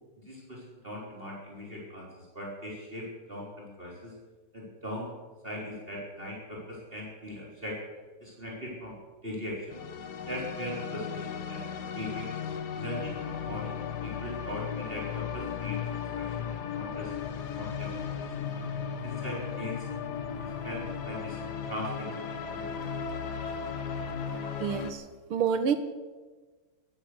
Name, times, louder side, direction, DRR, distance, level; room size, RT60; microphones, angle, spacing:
voice 1, 0.2-4.1 4.5-5.1 5.4-7.8 8.2-8.9 9.2-9.8 10.3-11.7 11.9-12.3 12.7-15.8 16.2-17.1 17.6-17.9 18.4-18.5 19.0-19.9 20.4-21.4 21.7-22.9, equal, 25° right, -4 dB, 4.1 m, -40 dB
sound 1, 9.7-24.9, left 7 dB, 55° left, 1.5 m, -36 dB
voice 2, 24.6-25.0 25.3-25.8, right 7 dB, 75° right, 9 dB, 2.1 m, -27 dB
15.5 x 12.5 x 6.5 m, 1.3 s
omnidirectional pair, 2.4 m